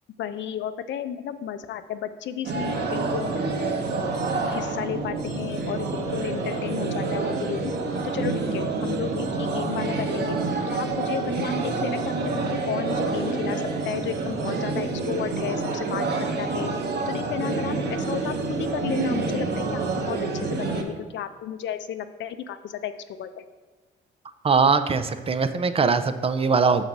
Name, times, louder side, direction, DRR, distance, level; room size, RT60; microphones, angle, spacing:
voice 1, 0.2-3.3 4.4-7.7 8.0-10.4 10.7-16.0 16.4-16.7 17.1-22.9 23.2-23.4, left 9 dB, 65° left, 11 dB, 0.5 m, -33 dB
sound 1, 2.4-20.8, right 3 dB, 55° right, 1.1 m, -27 dB
voice 2, 24.4-26.8, right 5 dB, 30° right, 11 dB, 0.5 m, -21 dB
6.5 x 4.0 x 6.0 m, 1.3 s
cardioid pair, 90°, 20 cm